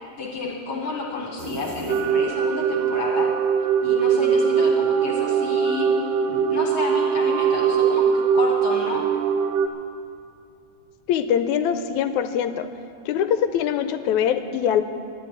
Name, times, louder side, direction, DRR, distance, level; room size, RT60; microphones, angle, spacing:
voice 1, 0.2-3.3 3.8-9.1, left 3 dB, 55° left, 0 dB, 2.2 m, -30 dB
sound 1, 1.4-2.6, right 2 dB, 70° right, 3.7 m, -36 dB
sound 2, 1.9-9.7, right 7 dB, 85° right, 2.3 m, -21 dB
voice 2, 11.1-12.7 13.1-14.8, left 9 dB, 80° left, 9 dB, 2.0 m, -23 dB
13.0 x 10.5 x 9.1 m, 2.5 s
omnidirectional pair, 3.4 m